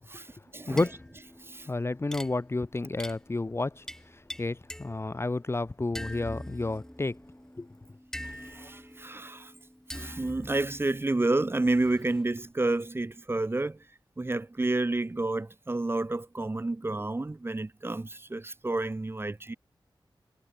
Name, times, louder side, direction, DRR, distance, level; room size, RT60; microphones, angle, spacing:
voice 1, 0.1-0.8 1.4-1.7 8.2-9.5 9.9-13.8 14.2-19.5, right 2 dB, 25° right, 0.8 m, -30 dB
voice 2, 0.7-1.0 1.7-3.9 4.1-7.2 7.6-7.7, left 2 dB, 30° left, 0.7 m, -31 dB
sound 1, 0.7-5.5 6.0-12.5, equal, 5° left, 5.0 m, -45 dB
wide cardioid pair, 70°, 9 cm